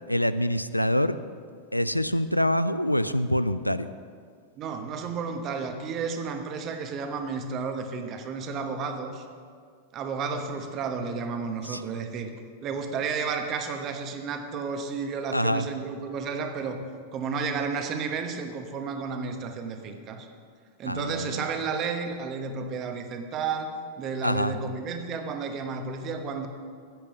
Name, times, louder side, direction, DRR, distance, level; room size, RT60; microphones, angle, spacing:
voice 1, 0.1-1.2 1.7-3.9 11.7-11.8 15.3-15.7 20.9-21.4 24.2-24.5, equal, 90° left, 13 dB, 0.3 m, -25 dB
voice 2, 4.6-9.2 9.9-12.3 12.6-16.8 17.1-20.3 20.8-26.5, right 5 dB, 35° right, 6 dB, 1.1 m, -32 dB
10.5 x 8.7 x 5.7 m, 2.1 s
figure-of-eight pair, 90°, 0 cm